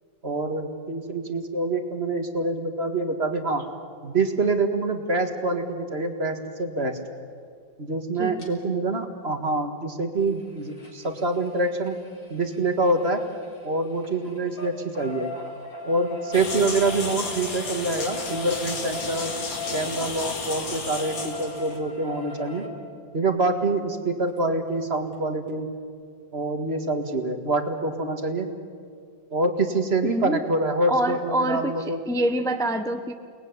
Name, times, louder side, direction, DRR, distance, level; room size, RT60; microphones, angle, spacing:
voice 1, 0.2-3.7 4.0-7.0 7.8-12.0 12.3-13.2 13.6-15.3 15.8-19.3 19.7-22.7 23.1-25.7 26.3-28.5 29.3-32.0, right 2 dB, 35° right, 6 dB, 2.0 m, -26 dB
sound 1, 8.4-8.5 10.1-13.7 14.0-22.7 24.4-24.5 24.7-24.8 25.1-25.2, left 2 dB, 55° left, 4.2 m, -39 dB
sound 2, 16.3-21.8, left 4 dB, 75° left, 3.3 m, -33 dB
voice 2, 30.0-30.4 30.9-33.1, right 1 dB, 5° left, 7 dB, 0.4 m, -26 dB
29.5 x 19.5 x 9.7 m, 2.2 s
omnidirectional pair, 2.1 m